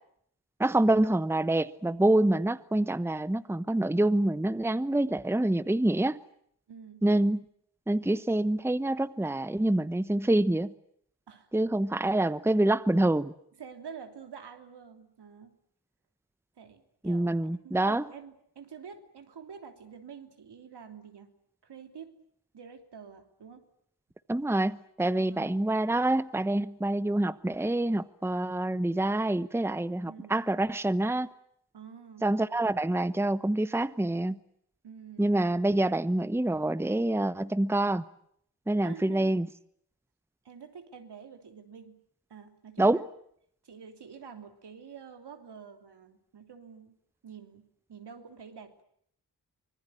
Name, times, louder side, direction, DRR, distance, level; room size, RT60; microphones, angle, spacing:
voice 1, 0.6-6.2 7.0-7.4 7.9-10.7 11.5-13.3 17.0-18.0 24.3-31.3 32.2-34.4 35.2-38.0 38.7-39.5 42.8-43.0, right 1 dB, 5° right, 1.0 m, -26 dB
voice 2, 6.7-7.0 11.3-11.5 13.5-15.5 16.6-21.3 21.6-22.2 22.5-23.7 25.2-25.5 30.0-30.4 31.7-32.3 34.8-35.3 38.8-39.4 40.4-42.0 42.3-43.0 43.6-46.9 47.2-48.8, right 6 dB, 80° right, 3.3 m, -47 dB
25.5 x 20.0 x 9.8 m
cardioid pair, 55°, 40 cm